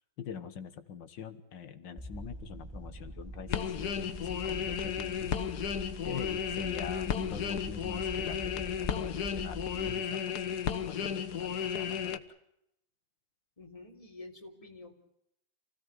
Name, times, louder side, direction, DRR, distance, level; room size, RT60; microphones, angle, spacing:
voice 1, 0.2-5.6 6.0-12.2, left 7 dB, 90° left, 10 dB, 2.1 m, -44 dB
sound 1, 2.0-10.0, right 1 dB, 15° right, 1.6 m, -44 dB
sound 2, 3.5-12.2, left 8 dB, 65° left, 1.7 m, -34 dB
voice 2, 13.6-14.9, left 2 dB, 20° left, 2 dB, 3.4 m, -48 dB
28.5 x 17.0 x 8.1 m, 0.80 s
omnidirectional pair, 1.9 m